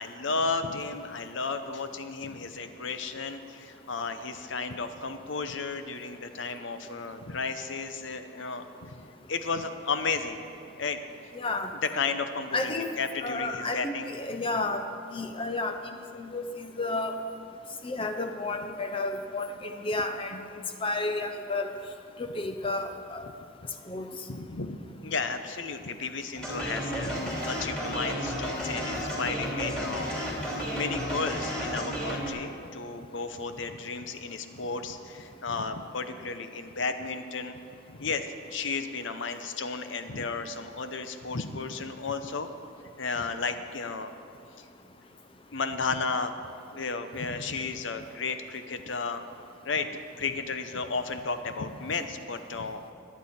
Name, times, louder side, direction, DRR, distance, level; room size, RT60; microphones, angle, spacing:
voice 1, 0.0-9.0 9.3-10.4 10.8-11.0 11.9-14.1 24.3-37.6 37.9-42.5 43.0-44.1 44.6-44.7 45.5-46.3 46.7-49.2 49.6-52.8, left 4 dB, 65° left, 9 dB, 0.8 m, -33 dB
voice 2, 11.3-11.7 12.5-12.9 13.2-14.9 15.1-17.1 17.8-20.4 20.8-21.7 22.2-23.3 23.9-24.1 27.4-27.5, left 2 dB, 25° left, 6 dB, 0.7 m, -32 dB
sound 1, 26.4-32.3, equal, 5° left, 2.6 m, -32 dB
21.5 x 8.4 x 4.3 m, 2.5 s
head